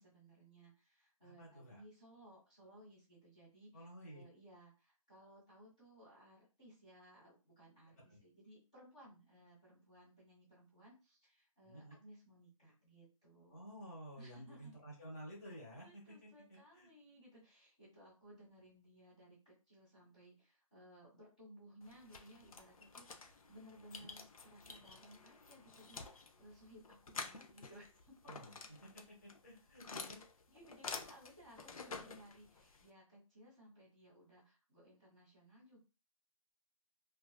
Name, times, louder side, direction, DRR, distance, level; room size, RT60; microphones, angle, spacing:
voice 1, 0.0-13.7 14.1-14.7 15.8-28.1 30.5-35.8, equal, 10° left, -10 dB, 0.5 m, -61 dB
voice 2, 1.2-1.8 3.7-4.2 8.0-8.2 11.6-12.0 13.5-16.9 24.0-24.1 28.2-30.2, right 1 dB, 30° left, -3 dB, 1.0 m, -53 dB
sound 1, 21.8-32.9, left 4 dB, 80° left, 0.5 m, -50 dB
2.4 x 2.3 x 2.2 m, 0.31 s
hypercardioid pair, 175°, 18 cm